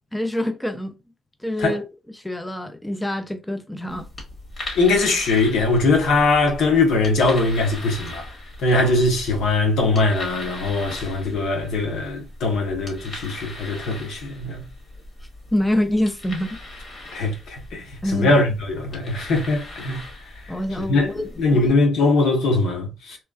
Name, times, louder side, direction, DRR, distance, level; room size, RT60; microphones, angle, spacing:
voice 1, 0.1-0.9 1.4-1.8 2.1-4.1 15.5-16.6 18.0-18.4 20.5-21.8, left 1 dB, 5° left, 0.4 m, -25 dB
sound 1, 3.9-21.7, left 1 dB, 45° left, 1.8 m, -39 dB
voice 2, 4.7-8.3 8.6-14.6 17.1-20.0 20.9-21.1 21.4-23.2, left 3 dB, 75° left, 1.1 m, -21 dB
3.0 x 2.3 x 2.4 m
cardioid pair, 90°, 0 cm